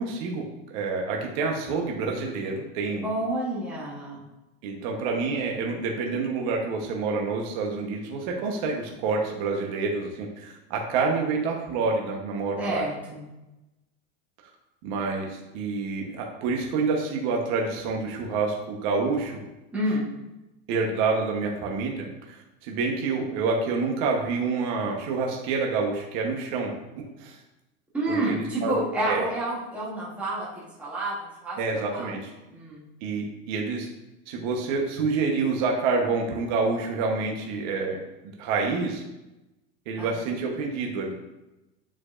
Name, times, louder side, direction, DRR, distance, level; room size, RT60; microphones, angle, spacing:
voice 1, 0.0-3.0 4.6-12.8 14.8-19.4 20.7-26.7 27.2-27.4 28.1-28.7 29.1-29.2 31.6-32.3 33.0-33.9 34.3-38.0 38.4-39.0 39.9-41.1, right 4 dB, 50° right, 1 dB, 1.0 m, -28 dB
voice 2, 3.0-4.2 12.6-13.2 19.7-20.0 27.9-32.1 32.5-32.8 40.0-40.1, right 1 dB, 5° right, -7 dB, 1.1 m, -29 dB
9.1 x 4.9 x 2.5 m, 0.99 s
supercardioid pair, 175°, 32 cm